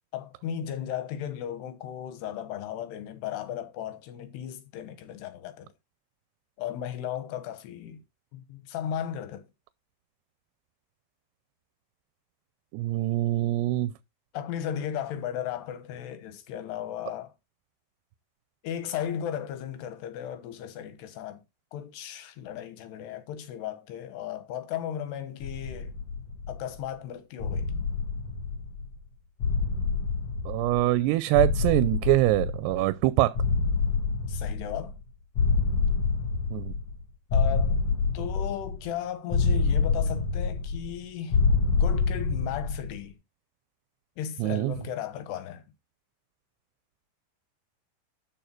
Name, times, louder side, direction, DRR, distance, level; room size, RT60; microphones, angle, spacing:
voice 1, 0.1-5.7 6.6-8.0 8.3-9.5 14.3-17.3 18.6-21.4 21.7-25.9 26.5-27.9 34.3-35.0 37.3-37.8 38.1-41.4 41.7-43.1 44.2-45.6, left 9 dB, 85° left, 3.3 m, -35 dB
voice 2, 12.7-13.9 30.5-33.4 36.5-36.7 44.4-44.7, right 17 dB, 90° right, 2.7 m, -24 dB
sound 1, 25.4-26.8 27.4-28.9 29.4-31.0 31.3-32.9 33.3-35.0 35.3-37.0 37.3-38.9 39.3-41.0 41.3-42.9, left 4 dB, 65° left, 1.6 m, -27 dB
13.0 x 4.5 x 4.4 m
omnidirectional pair, 4.6 m